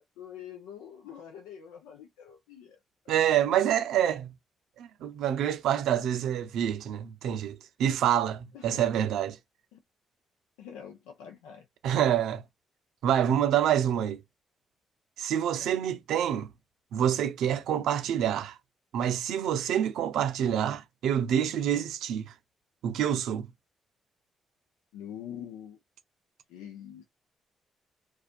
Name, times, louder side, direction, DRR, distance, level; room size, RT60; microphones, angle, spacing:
voice 1, 0.0-2.8 8.5-8.8 9.7-9.8 10.6-11.7 15.6-15.8 24.9-25.8 26.5-27.0, left 9 dB, 85° left, 0.6 m, -45 dB
voice 2, 3.1-4.3 4.8-9.4 11.8-12.4 13.0-14.2 15.2-16.5 16.9-18.6 18.9-22.3 22.8-23.5, right 10 dB, 80° right, 0.5 m, -27 dB
2.4 x 2.3 x 2.3 m
hypercardioid pair, 45°, 0 cm